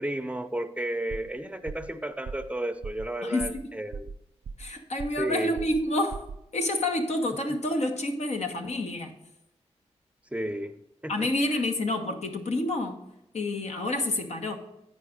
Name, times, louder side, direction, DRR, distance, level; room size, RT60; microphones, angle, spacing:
voice 1, 0.0-4.1 5.2-5.6 10.3-11.1, right 1 dB, 10° right, 0.5 m, -33 dB
sound 1, 1.1-1.4 1.7-1.9 2.3-2.5 2.8-3.1 3.4-3.7 3.9-4.7 5.0-5.3 5.6-5.9 6.1-6.4, right 5 dB, 90° right, 0.4 m, -38 dB
voice 2, 3.2-3.7 4.6-9.1 11.1-13.0 13.3-14.6, left 1 dB, 75° left, 1.1 m, -29 dB
8.5 x 5.7 x 5.0 m
cardioid pair, 70°, 11 cm